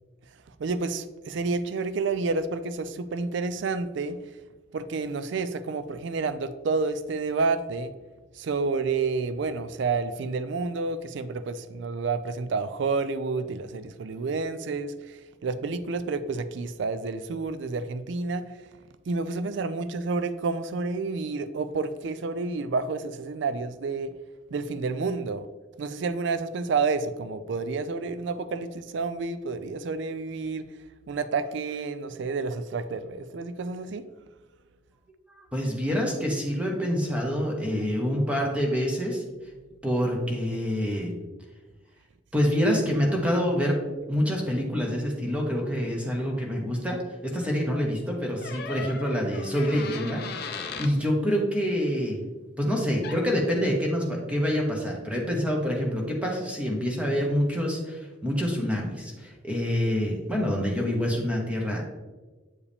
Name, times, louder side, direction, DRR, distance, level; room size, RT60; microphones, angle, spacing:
voice 1, 0.6-4.2 4.7-7.9 8.4-18.5 19.1-24.1 24.5-25.5 25.8-30.7 31.1-34.1, right 4 dB, 60° right, 13 dB, 0.4 m, -29 dB
voice 2, 35.5-39.2 39.8-41.1 42.3-43.8 44.1-52.2 52.6-61.9, equal, 5° right, -1 dB, 1.0 m, -26 dB
sound 1, 48.4-50.9 53.0-53.2, left 5 dB, 50° left, 0.6 m, -37 dB
8.3 x 4.7 x 3.4 m, 1.2 s
head